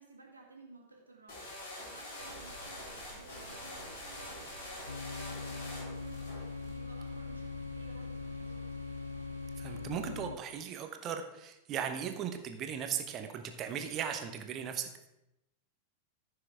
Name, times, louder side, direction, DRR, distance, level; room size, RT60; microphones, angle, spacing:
voice 1, 0.0-1.5 1.8-8.8, right 3 dB, 80° right, 0 dB, 2.2 m, -56 dB
sound 1, 1.3-6.7, left 1 dB, 55° left, 3.9 m, -45 dB
sound 2, 2.2-9.9, right 3 dB, 60° right, 1.3 m, -54 dB
sound 3, 4.9-10.4, left 4 dB, 75° left, 0.3 m, -41 dB
voice 2, 9.6-14.9, right 8 dB, 35° right, 7 dB, 1.1 m, -37 dB
14.5 x 6.9 x 3.6 m, 0.89 s
figure-of-eight pair, 90°, 0 cm